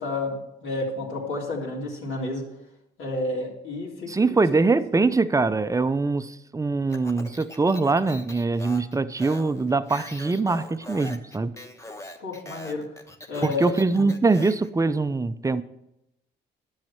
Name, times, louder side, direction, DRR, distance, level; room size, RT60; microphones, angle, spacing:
voice 1, 0.0-2.4 3.0-4.6 4.9-5.1 12.2-12.8 13.3-13.7, left 2 dB, 80° left, -5 dB, 3.3 m, -31 dB
voice 2, 4.1-11.5 13.6-15.6, right 3 dB, 15° right, 13 dB, 0.6 m, -23 dB
Speech, 6.9-14.7, left 1 dB, 15° left, 1.2 m, -42 dB
11.0 x 6.5 x 7.3 m, 0.86 s
cardioid pair, 90°, 20 cm